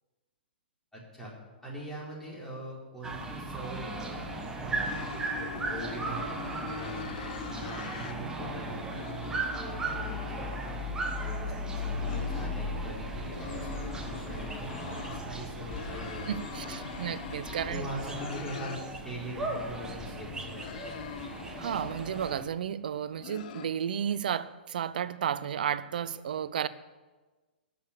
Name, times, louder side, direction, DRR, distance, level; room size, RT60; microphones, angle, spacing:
voice 1, 0.9-1.3 1.6-10.8 11.1-16.3 16.6-16.9 17.7-21.1, right 1 dB, 5° left, -6 dB, 4.6 m, -42 dB
sound 1, 3.0-22.5, right 1 dB, 10° right, 1.4 m, -36 dB
sound 2, 4.1-4.5 4.8-8.1 8.5-11.0 11.8-15.2 15.6-18.8 19.1-22.4 22.9-23.7, left 8 dB, 45° left, 0.8 m, -44 dB
voice 2, 16.3-17.9 21.6-26.7, right 9 dB, 55° right, 16 dB, 0.6 m, -33 dB
13.0 x 6.9 x 8.8 m, 1.2 s
figure-of-eight pair, 115°, 6 cm